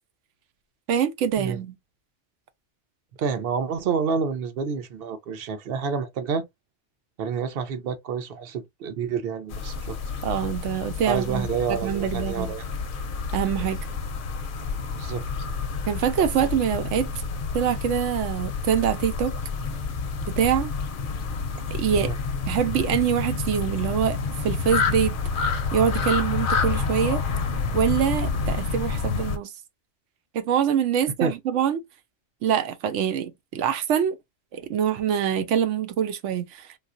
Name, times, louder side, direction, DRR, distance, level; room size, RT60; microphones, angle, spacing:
voice 1, 0.9-1.8 10.2-12.5 13.3-13.8 15.9-17.1 17.5-19.3 20.3-20.7 21.7-22.1 22.5-24.2 24.4-25.2 25.7-27.2 27.7-29.5 30.3-31.8 32.4-34.2 34.5-36.5, right 9 dB, 85° right, 0.9 m, -24 dB
voice 2, 3.2-6.4 7.2-10.0 11.1-12.6 15.0-15.2 21.9-22.2 28.4-28.6 31.2-31.3, right 6 dB, 60° right, 0.8 m, -28 dB
sound 1, 9.5-29.4, left 5 dB, 60° left, 0.6 m, -29 dB
3.3 x 2.4 x 2.4 m
omnidirectional pair, 1.2 m